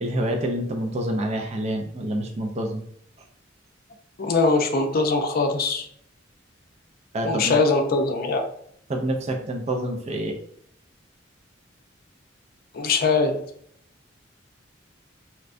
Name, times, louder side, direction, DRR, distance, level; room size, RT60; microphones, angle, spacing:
voice 1, 0.0-2.8 7.1-7.6 8.9-10.3, right 1 dB, 35° right, 2 dB, 0.4 m, -27 dB
voice 2, 4.2-5.9 7.2-8.5 12.7-13.4, left 3 dB, 50° left, 4 dB, 0.5 m, -22 dB
4.2 x 2.2 x 2.5 m, 0.67 s
head